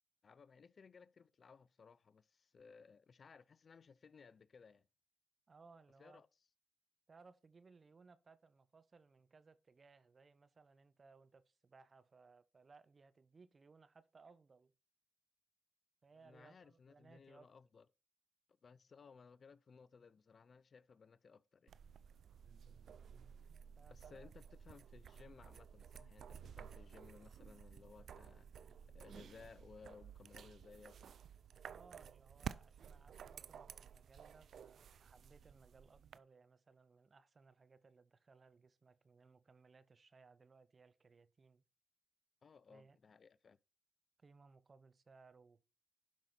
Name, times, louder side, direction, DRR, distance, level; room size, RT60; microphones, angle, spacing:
voice 1, 0.2-4.9 6.0-6.3 16.2-17.9 18.6-21.8 23.9-28.7 28.9-31.2 42.4-43.6, left 5 dB, 50° left, 0.5 m, -61 dB
voice 2, 5.5-6.2 7.1-14.7 16.0-17.5 23.8-24.3 31.7-41.6 42.7-43.0 44.2-45.6, right 4 dB, 40° right, 0.9 m, -64 dB
sound 1, 21.7-36.2, right 8 dB, 65° right, 0.5 m, -54 dB
12.0 x 5.6 x 4.2 m
supercardioid pair, 55°, 0 cm